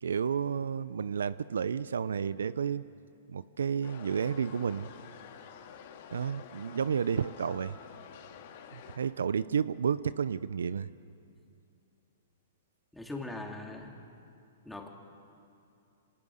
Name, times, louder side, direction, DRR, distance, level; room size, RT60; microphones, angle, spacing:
voice 1, 0.0-2.8 3.3-4.9 6.1-7.8 8.7-10.9, right 7 dB, 80° right, 17 dB, 0.6 m, -31 dB
sound 1, 3.8-9.0, left 8 dB, 55° left, 2.9 m, -49 dB
voice 2, 12.9-13.9 14.6-14.9, left 2 dB, 5° left, 0 dB, 3.5 m, -40 dB
28.5 x 26.5 x 6.7 m, 2.6 s
hypercardioid pair, 125°, 0 cm